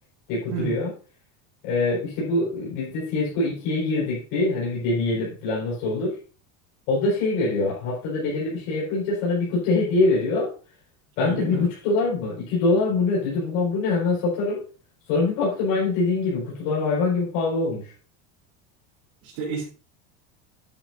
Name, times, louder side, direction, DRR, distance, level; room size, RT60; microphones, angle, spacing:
voice 1, 0.3-0.9 1.6-6.2 6.9-10.5 11.2-14.6 15.1-17.9, left 3 dB, 65° left, -6 dB, 5.0 m, -24 dB
voice 2, 11.2-11.7 19.2-19.7, right 5 dB, 70° right, -4 dB, 3.5 m, -30 dB
10.0 x 9.3 x 2.6 m, 0.38 s
cardioid pair, 165°, 34 cm